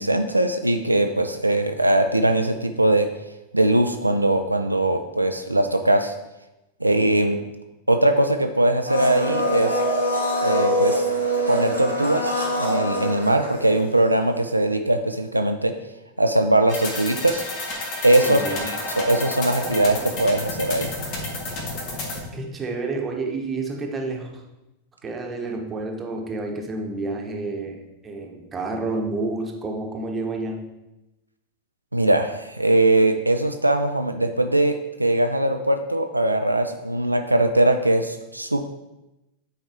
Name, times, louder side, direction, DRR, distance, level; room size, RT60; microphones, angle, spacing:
voice 1, 0.0-3.1 3.5-6.1 6.8-7.4 7.9-9.8 10.4-11.1 11.5-12.3 12.6-15.7 16.2-17.4 18.0-20.9 31.9-38.6, right 1 dB, 85° right, 6 dB, 0.4 m, -21 dB
Domestic sounds home sounds, 8.9-14.1 14.4-14.5, equal, 85° left, 1.3 m, -24 dB
sound 1, 16.7-22.3, left 2 dB, 40° left, 1.5 m, -30 dB
voice 2, 18.2-18.7 21.9-22.1 22.3-24.4 25.0-30.6, right 3 dB, 20° right, 1 dB, 1.1 m, -30 dB
8.9 x 4.3 x 3.5 m, 0.97 s
figure-of-eight pair, 90°, 0 cm